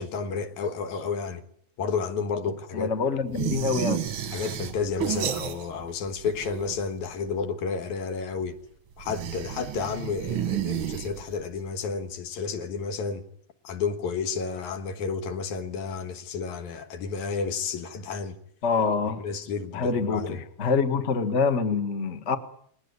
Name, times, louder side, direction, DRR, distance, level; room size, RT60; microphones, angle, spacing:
voice 1, 0.0-1.4 1.8-2.9 3.3-3.5 4.3-8.6 9.0-13.2 13.6-18.4 19.1-20.4, left 5 dB, 75° left, 2.7 m, -31 dB
voice 2, 2.7-4.0 18.6-19.2 19.7-22.4, left 5 dB, 35° left, 1.2 m, -25 dB
sound 1, 3.3-5.9 6.2-7.0 9.0-11.5, right 10 dB, 55° right, 1.5 m, -31 dB
21.0 x 18.5 x 9.6 m
omnidirectional pair, 3.5 m